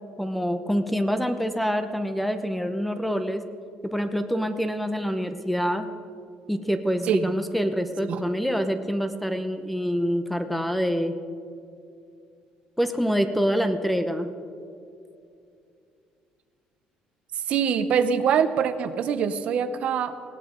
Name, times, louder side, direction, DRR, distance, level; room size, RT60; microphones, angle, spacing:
voice 1, 0.2-3.4 3.9-5.9 6.5-11.1 12.8-14.3, equal, ahead, 8 dB, 0.7 m, -26 dB
voice 2, 17.3-20.1, right 7 dB, 50° right, 11 dB, 0.8 m, -24 dB
20.0 x 17.0 x 3.9 m, 2.4 s
cardioid pair, 155°, 3 cm